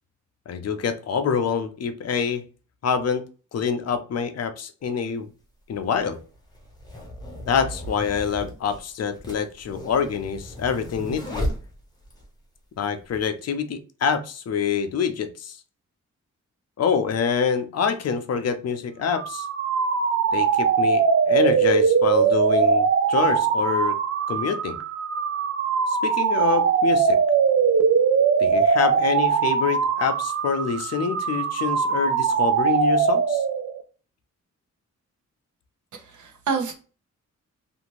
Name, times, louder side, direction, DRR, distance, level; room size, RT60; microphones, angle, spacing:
voice 1, 0.5-2.4 2.8-3.2 3.5-5.3 5.7-6.2 7.5-11.4 12.8-15.6 16.8-19.5 20.3-24.0 24.3-24.8 25.9-27.2 28.4-33.4, left 6 dB, 55° left, 8 dB, 0.5 m, -26 dB
sound 1, 4.8-4.9 5.8-12.3, equal, 15° left, 0.8 m, -35 dB
sound 2, 19.1-33.8, right 6 dB, 50° right, 0.5 m, -21 dB
voice 2, 35.9-36.7, right 5 dB, 75° right, 4 dB, 0.9 m, -28 dB
2.6 x 2.5 x 3.0 m, 0.36 s
wide cardioid pair, 135°, 30 cm